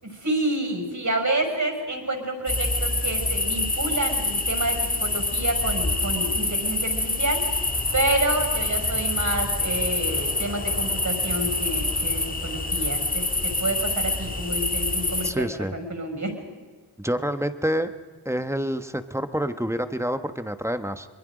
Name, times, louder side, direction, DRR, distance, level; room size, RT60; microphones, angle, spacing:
voice 1, 0.0-7.6 7.9-16.3, right 2 dB, 40° right, 4 dB, 6.2 m, -29 dB
sound 1, 2.5-15.3, left 2 dB, 20° left, 2.0 m, -26 dB
voice 2, 15.2-15.7 17.0-17.9 18.2-21.1, equal, 5° right, 9 dB, 1.3 m, -27 dB
27.0 x 22.0 x 5.1 m, 1.4 s
cardioid pair, 50°, 44 cm